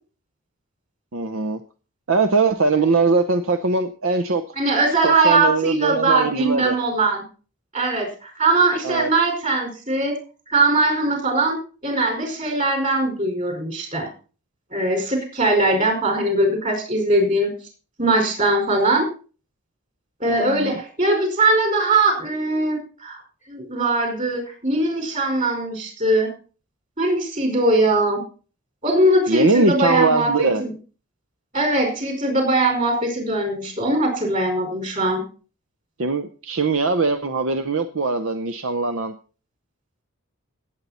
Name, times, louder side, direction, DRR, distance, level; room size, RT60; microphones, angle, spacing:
voice 1, 1.1-1.6 2.1-4.4 5.0-6.8 8.8-9.1 20.3-20.8 29.3-30.6 36.0-39.1, right 3 dB, 70° right, 9 dB, 0.8 m, -21 dB
voice 2, 4.6-7.2 7.7-10.1 10.5-11.6 11.8-14.1 14.7-17.5 18.0-19.1 20.2-23.2 23.5-26.3 27.0-28.2 28.8-30.7 31.5-35.2, right 2 dB, 35° right, 3 dB, 4.9 m, -20 dB
17.5 x 8.3 x 4.3 m, 0.38 s
head